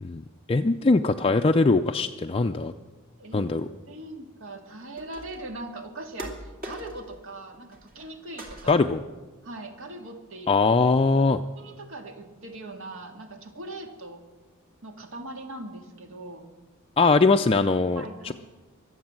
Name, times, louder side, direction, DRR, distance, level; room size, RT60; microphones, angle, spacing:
voice 1, 0.0-2.7 3.3-3.7 8.7-9.0 10.5-11.4 17.0-18.3, left 3 dB, 25° left, 6 dB, 0.4 m, -21 dB
voice 2, 3.2-3.5 3.9-8.7 9.4-10.5 11.5-14.2 14.8-16.4 18.0-18.3, right 2 dB, 65° right, 4 dB, 2.0 m, -40 dB
sound 1, 5.0-5.5 6.2-7.2 7.5-8.1 8.4-9.0, equal, 40° right, 2.8 m, -41 dB
23.0 x 8.0 x 7.5 m, 1.2 s
head